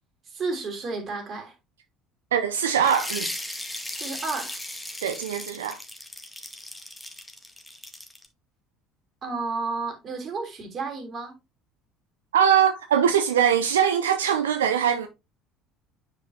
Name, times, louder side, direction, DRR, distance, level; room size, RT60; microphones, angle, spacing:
voice 1, 0.3-1.5 3.9-4.6 9.2-11.3, right 4 dB, 40° right, 3.2 m, -32 dB
voice 2, 2.3-3.3 5.0-5.8 12.3-15.1, right 8 dB, 80° right, 0.5 m, -22 dB
sound 1, 2.8-8.3, left 1 dB, 5° left, 1.9 m, -36 dB
9.6 x 5.2 x 2.8 m
figure-of-eight pair, 60°, 0 cm